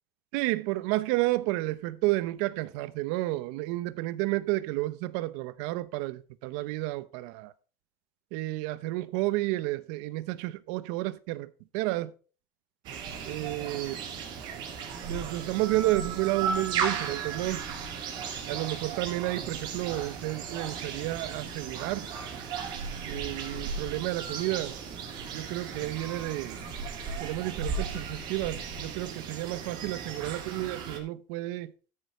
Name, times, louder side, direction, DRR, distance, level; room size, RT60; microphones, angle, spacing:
voice 1, 0.3-7.5 8.3-12.1 13.2-14.0 15.0-17.6 18.5-22.1 23.0-24.7 25.3-26.6 27.2-31.7, right 18 dB, 85° right, 0.8 m, -31 dB
sound 1, 12.8-31.0, right 5 dB, 55° right, 3.4 m, -36 dB
13.5 x 6.6 x 4.4 m
cardioid pair, 140°, 9 cm